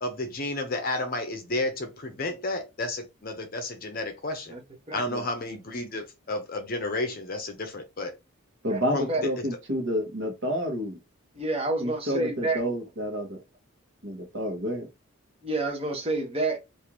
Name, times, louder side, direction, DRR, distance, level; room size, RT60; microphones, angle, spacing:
voice 1, 0.0-4.5 4.9-8.1 8.9-9.5, left 2 dB, 45° left, 0.7 m, -32 dB
voice 2, 8.6-11.0 11.8-13.4 14.0-14.9, equal, 60° right, 1.0 m, -30 dB
voice 3, 11.3-12.6 15.4-16.6, right 2 dB, 25° right, 0.9 m, -28 dB
3.7 x 2.6 x 3.0 m
head